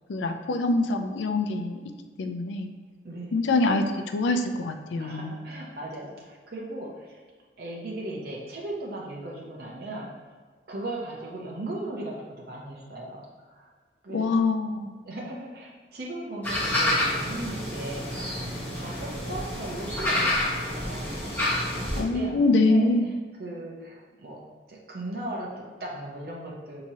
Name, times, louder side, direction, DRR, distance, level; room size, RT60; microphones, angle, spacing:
voice 1, 0.1-1.8 2.2-2.7 3.3-3.8 4.1-5.3 14.1-15.0 22.0-23.1, left 2 dB, 80° left, 6 dB, 0.4 m, -24 dB
voice 2, 3.0-3.5 5.0-7.2 7.6-10.1 10.7-13.7 14.0-14.3 15.0-21.2 21.7-23.1 23.4-24.4 24.7-26.8, right 1 dB, 55° right, -3 dB, 0.6 m, -37 dB
sound 1, 16.4-22.0, left 1 dB, 10° left, 0.9 m, -28 dB
6.0 x 2.9 x 2.7 m, 1.5 s
head